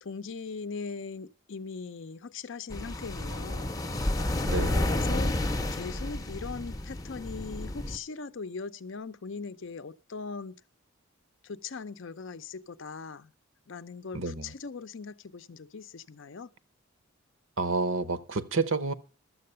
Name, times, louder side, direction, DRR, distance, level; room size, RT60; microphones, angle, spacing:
voice 1, 0.0-3.7 4.6-5.4 5.7-10.6 11.4-13.3 13.7-16.5, left 4 dB, 60° left, 0.5 m, -40 dB
sound 1, 2.7-8.0, left 1 dB, 15° left, 0.7 m, -31 dB
voice 2, 4.5-4.9 14.1-14.5 17.6-18.9, right 3 dB, 60° right, 0.8 m, -29 dB
12.5 x 7.7 x 6.6 m
head